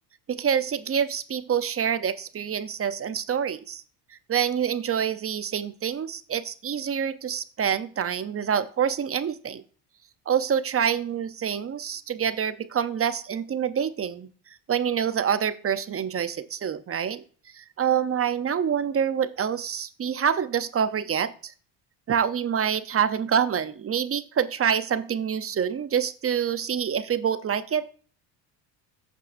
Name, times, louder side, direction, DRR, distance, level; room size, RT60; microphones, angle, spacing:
voice 1, 0.3-3.8 4.3-9.6 10.3-14.3 14.7-17.2 17.5-21.5 22.1-27.9, right 8 dB, 30° right, 13 dB, 0.8 m, -26 dB
14.5 x 5.5 x 2.6 m, 0.42 s
supercardioid pair, 90°, 48 cm